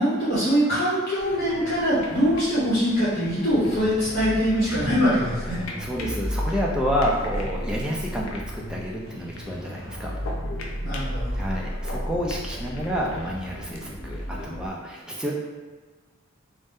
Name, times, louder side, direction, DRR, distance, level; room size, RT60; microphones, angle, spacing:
voice 1, 0.0-5.6 10.8-11.4, equal, 40° left, -11 dB, 0.8 m, -23 dB
sound 1, 1.2-14.5, left 2 dB, 70° left, 0.4 m, -41 dB
sound 2, 3.6-14.7, equal, 50° right, 1.3 m, -33 dB
voice 2, 5.8-10.1 11.3-15.3, equal, 5° right, -3 dB, 0.3 m, -29 dB
2.6 x 2.1 x 3.4 m, 1.3 s
head